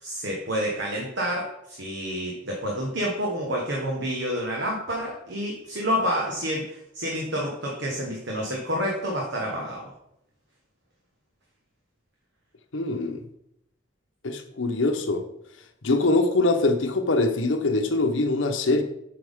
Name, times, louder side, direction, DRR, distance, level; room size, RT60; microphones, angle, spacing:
voice 1, 0.0-9.9, equal, 65° right, 1.3 m, -29 dB
voice 2, 12.7-13.2 14.2-15.2 15.8-18.8, left 2 dB, 80° left, 0.9 m, -23 dB
7.9 x 5.9 x 3.6 m
head